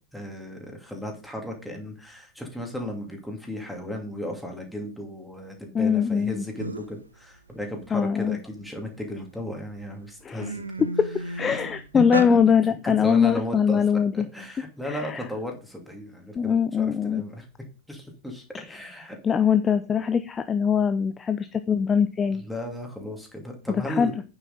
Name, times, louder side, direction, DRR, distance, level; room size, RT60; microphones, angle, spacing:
voice 1, 0.1-10.6 12.3-12.4 12.8-13.8 14.1-17.4 17.9-19.2 22.3-24.1, equal, ahead, 1 dB, 2.6 m, -35 dB
voice 2, 5.7-6.4 7.9-8.4 10.2-10.6 11.0-11.1 11.4-14.3 14.8-15.3 16.4-17.2 18.5-22.4 23.7-24.2, left 7 dB, 20° left, 10 dB, 0.5 m, -23 dB
sound 1, 6.2-6.3 6.6-7.0 7.5-9.0 9.6-9.8 10.1-12.3, right 2 dB, 80° right, 0.8 m, -34 dB
9.1 x 7.2 x 3.9 m, 0.34 s
figure-of-eight pair, 90°, 0 cm